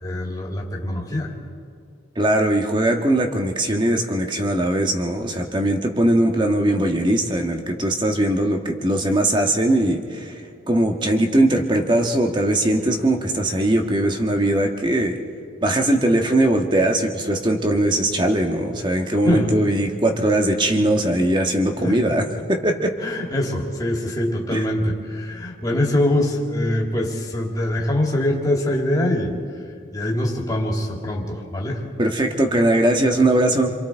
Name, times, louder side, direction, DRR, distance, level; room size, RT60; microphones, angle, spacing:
voice 1, 0.0-1.3 19.2-19.5 21.8-22.0 23.0-29.3 29.9-31.8, left 1 dB, 20° left, -2 dB, 2.7 m, -23 dB
voice 2, 2.2-10.3 10.7-15.2 15.6-22.9 24.5-24.6 32.0-33.7, right 1 dB, 25° right, 3 dB, 1.5 m, -20 dB
29.0 x 23.5 x 4.6 m, 2.3 s
head